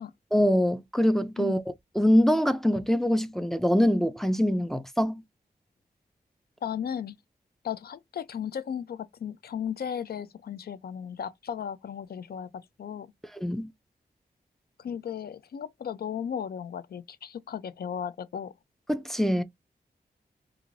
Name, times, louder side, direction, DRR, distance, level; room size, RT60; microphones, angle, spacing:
voice 1, 0.3-1.6 2.0-5.2 13.4-13.7 18.9-19.4, equal, ahead, 0.3 m, -24 dB
voice 2, 6.6-7.2 7.6-13.1 14.8-18.5, left 8 dB, 70° left, 0.4 m, -35 dB
2.5 x 2.4 x 3.0 m
wide cardioid pair, 105°, 16 cm